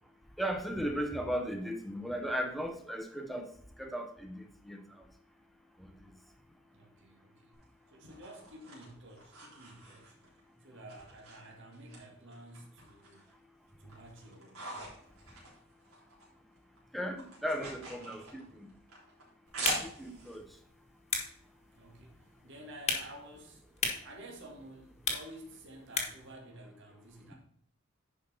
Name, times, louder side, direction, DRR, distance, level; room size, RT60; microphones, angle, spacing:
voice 1, 0.4-3.5 3.8-5.0 5.8-5.9 16.9-18.7 19.6-20.5, equal, ahead, 4 dB, 1.0 m, -36 dB
voice 2, 6.7-7.6 7.9-10.2 10.6-13.3 13.8-14.7 17.9-18.3 21.7-23.6 24.0-27.3, right 1 dB, 60° right, 0 dB, 2.0 m, -51 dB
sound 1, 7.5-10.4 10.9-12.0 12.3-13.3 13.7-16.3 16.6-20.4, right 2 dB, 80° right, 3.6 m, -43 dB
sound 2, 19.5-26.3, left 4 dB, 30° left, 1.5 m, -39 dB
10.0 x 5.2 x 4.3 m, 0.64 s
head